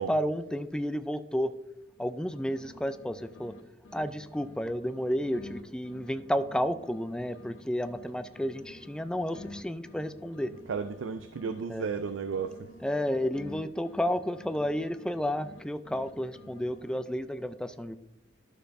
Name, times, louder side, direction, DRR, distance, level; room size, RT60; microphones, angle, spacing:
voice 1, 0.1-1.6 2.0-3.6 3.9-10.5 11.7-11.9 12.8-18.0, equal, 5° left, 0.3 m, -31 dB
sound 1, 1.9-3.6 3.8-7.6 7.8-11.6 11.8-15.6 15.8-17.3, left 2 dB, 80° left, 1.2 m, -50 dB
voice 2, 10.7-12.7, right 5 dB, 75° right, 0.4 m, -33 dB
12.5 x 6.7 x 2.6 m
head